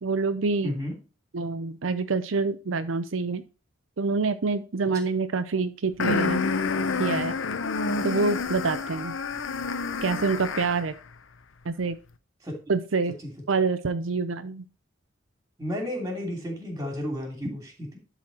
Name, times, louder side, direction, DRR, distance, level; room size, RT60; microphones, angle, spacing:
voice 1, 0.0-0.7 1.3-3.4 4.0-6.4 7.0-7.4 8.0-9.1 10.0-10.9 11.6-12.0 12.7-13.1 13.5-14.6, right 4 dB, 85° right, 10 dB, 0.6 m, -26 dB
voice 2, 0.6-0.9 12.4-12.6 15.6-18.0, left 1 dB, 15° right, 2 dB, 2.9 m, -32 dB
sound 1, 6.0-10.9, left 4 dB, 80° left, 0.7 m, -28 dB
11.5 x 4.1 x 4.3 m, 0.33 s
head